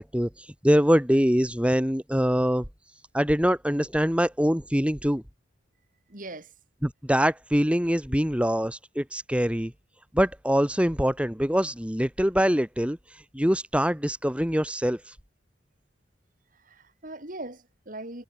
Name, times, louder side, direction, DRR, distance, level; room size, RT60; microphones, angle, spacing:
voice 1, 0.0-2.7 3.1-5.2 6.8-9.7 10.1-13.0 13.3-15.1, equal, 5° right, 3.3 m, -24 dB
voice 2, 6.1-6.5 16.7-18.2, right 2 dB, 50° right, 5.4 m, -40 dB
head